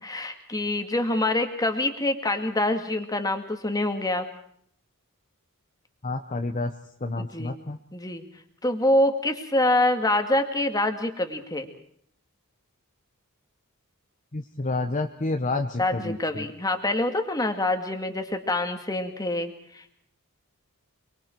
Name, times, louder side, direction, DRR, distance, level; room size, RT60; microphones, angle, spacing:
voice 1, 0.0-4.3 7.2-7.6 7.9-8.2 8.6-11.7 15.8-19.9, left 1 dB, 15° left, 6 dB, 2.1 m, -26 dB
voice 2, 6.0-6.7 7.0-7.8 14.3-16.5, left 2 dB, 35° left, 6 dB, 1.0 m, -29 dB
29.5 x 22.0 x 4.6 m, 0.63 s
head